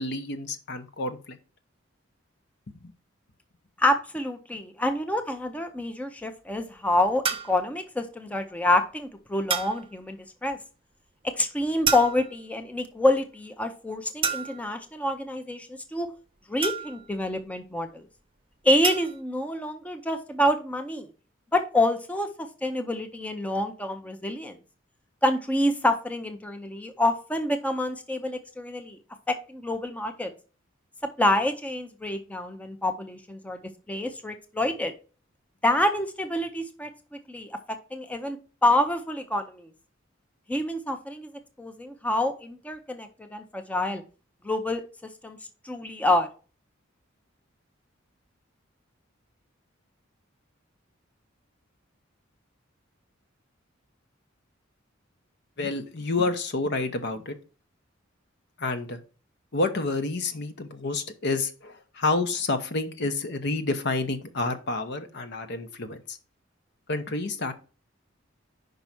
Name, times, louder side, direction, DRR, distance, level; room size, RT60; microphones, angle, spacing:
voice 1, 0.0-1.4 2.8-2.9 55.6-57.4 58.6-59.0 59.5-66.2 66.9-67.5, left 3 dB, 60° left, 0.9 m, -29 dB
voice 2, 3.8-10.6 11.2-16.1 16.5-18.1 18.6-21.1 21.5-24.6 25.2-29.0 29.3-30.3 31.2-33.6 33.9-34.9 35.6-36.9 37.3-39.7 40.5-41.3 41.6-44.0 44.4-44.8 45.2-45.4 45.6-46.3, left 1 dB, 5° left, 0.6 m, -27 dB
sound 1, 7.2-7.6 9.5-9.9 11.8-12.4 14.2-14.7 16.6-17.2 18.8-19.2, right 6 dB, 30° right, 0.7 m, -29 dB
5.4 x 4.7 x 6.0 m
head